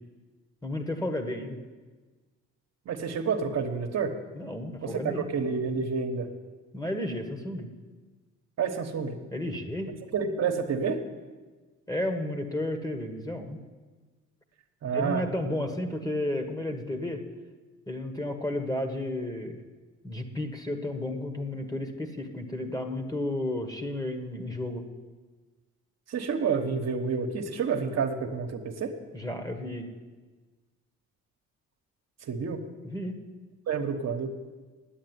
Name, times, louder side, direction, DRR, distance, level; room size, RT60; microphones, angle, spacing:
voice 1, 0.6-1.6 4.3-5.3 6.7-7.7 9.3-9.9 11.9-13.6 14.9-17.2 17.9-19.6 20.0-24.8 29.1-29.9 32.8-33.2, left 1 dB, 10° left, 6 dB, 1.5 m, -32 dB
voice 2, 2.8-4.1 4.8-6.3 8.6-9.1 10.1-11.0 14.8-15.2 26.1-28.9 32.2-32.6 33.7-34.3, right 5 dB, 60° right, 4 dB, 1.2 m, -29 dB
9.1 x 8.8 x 9.4 m, 1.3 s
cardioid pair, 90°, 30 cm